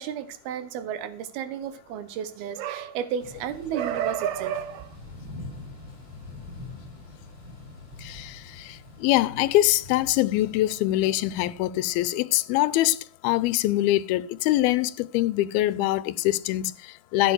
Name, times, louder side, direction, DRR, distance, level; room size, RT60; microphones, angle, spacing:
voice 1, 0.0-4.9, right 9 dB, 90° right, 3.1 m, -31 dB
Thunder / Rain, 3.2-12.0, left 2 dB, 15° right, 7.8 m, -44 dB
voice 2, 8.0-17.3, left 15 dB, 85° left, 2.6 m, -24 dB
14.5 x 7.8 x 6.3 m
omnidirectional pair, 4.3 m